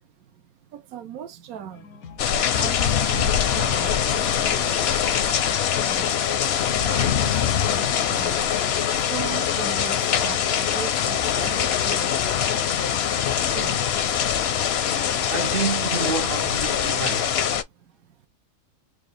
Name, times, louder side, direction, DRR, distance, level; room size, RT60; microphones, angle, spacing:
voice 1, 0.7-1.8 2.6-4.7 5.0-5.2 5.7-6.1 6.7-7.3 7.6-8.4 9.1-12.1 13.5-13.8, right 8 dB, 75° right, 1.2 m, -37 dB
sound 1, 1.7-15.2, left 6 dB, 90° left, 1.3 m, -44 dB
sound 2, 2.2-17.6, left 9 dB, 65° left, 0.6 m, -23 dB
voice 2, 15.3-17.4, right 5 dB, 60° right, 0.6 m, -29 dB
4.6 x 2.2 x 3.3 m
omnidirectional pair, 1.5 m